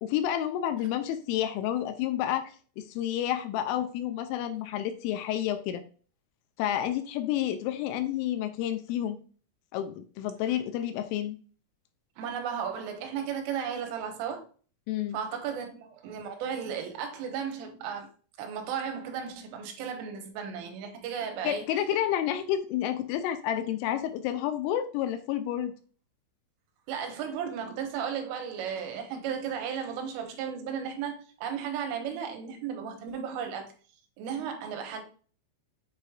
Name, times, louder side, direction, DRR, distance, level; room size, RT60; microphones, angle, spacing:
voice 1, 0.0-5.8 6.6-9.2 9.7-11.4 14.9-15.2 21.4-25.7, left 11 dB, 85° left, 3.0 m, -30 dB
voice 2, 12.2-14.4 15.1-18.1 18.4-21.7 26.9-33.7 34.2-35.0, right 7 dB, 80° right, 3.6 m, -35 dB
8.2 x 5.1 x 2.3 m
omnidirectional pair, 5.9 m